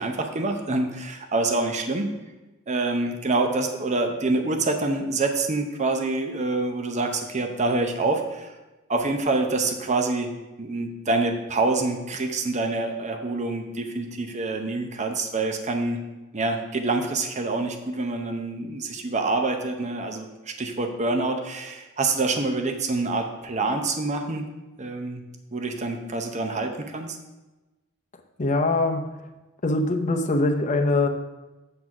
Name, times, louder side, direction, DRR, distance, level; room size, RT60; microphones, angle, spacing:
voice 1, 0.0-2.1 2.7-8.5 8.9-10.3 10.6-16.0 16.3-24.5 24.8-25.2 25.5-27.2, right 3 dB, 35° right, 5 dB, 0.7 m, -26 dB
voice 2, 28.4-29.2 29.6-31.1, left 2 dB, 35° left, 4 dB, 0.7 m, -22 dB
7.7 x 4.0 x 5.9 m, 1.1 s
head